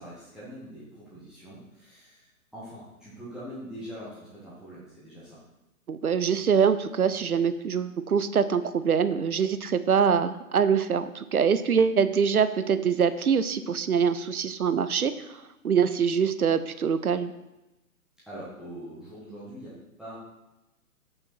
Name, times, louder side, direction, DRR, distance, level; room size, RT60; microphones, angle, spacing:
voice 1, 0.0-5.4 18.3-20.2, equal, ahead, -10 dB, 1.1 m, -43 dB
voice 2, 5.9-17.3, right 6 dB, 80° right, 13 dB, 0.6 m, -24 dB
5.8 x 5.2 x 4.3 m, 0.97 s
figure-of-eight pair, 125°, 44 cm